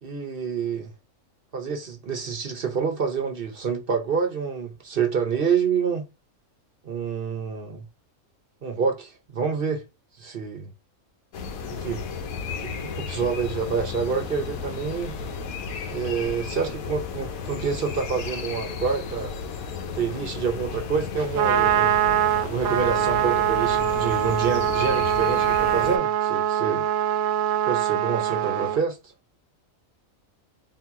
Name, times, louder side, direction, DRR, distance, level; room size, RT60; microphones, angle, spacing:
voice 1, 0.0-0.9 1.5-6.0 6.8-7.9 8.6-9.8 10.2-10.7 11.7-12.1 12.6-15.1 15.9-19.4 19.9-21.9 22.4-26.8 27.7-29.1, right 6 dB, 50° right, 0.9 m, -27 dB
sound 1, 11.3-26.0, left 6 dB, 85° left, 1.2 m, -34 dB
Trumpet, 21.2-28.8, right 11 dB, 75° right, 1.1 m, -23 dB
3.8 x 2.9 x 3.5 m
omnidirectional pair, 1.4 m